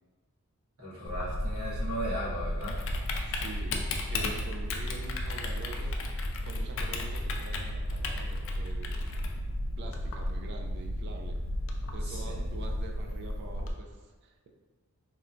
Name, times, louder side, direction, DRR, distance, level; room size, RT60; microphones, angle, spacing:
voice 1, 0.8-2.8 12.0-12.5, equal, 75° right, -8 dB, 1.2 m, -37 dB
Typing, 1.0-13.7, left 1 dB, 55° left, 0.3 m, -33 dB
voice 2, 3.2-3.8 4.1-5.9 6.4-9.3 9.8-11.4 11.9-14.5, right 3 dB, 50° right, 3 dB, 0.3 m, -45 dB
2.9 x 2.2 x 2.5 m, 1.3 s
head